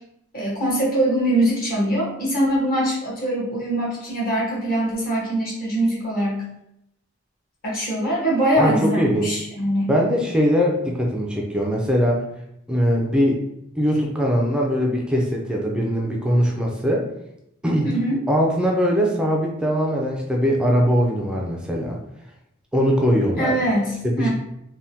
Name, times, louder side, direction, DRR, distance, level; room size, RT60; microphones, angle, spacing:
voice 1, 0.3-6.4 7.6-9.9 17.8-18.2 23.4-24.3, right 1 dB, 45° left, -5 dB, 1.2 m, -22 dB
voice 2, 8.6-9.4 9.9-12.2 12.7-13.4 13.8-17.1 17.6-17.9 18.3-22.0 22.7-23.6 24.0-24.3, equal, 5° right, -1 dB, 0.4 m, -21 dB
3.4 x 2.1 x 2.7 m, 0.81 s
head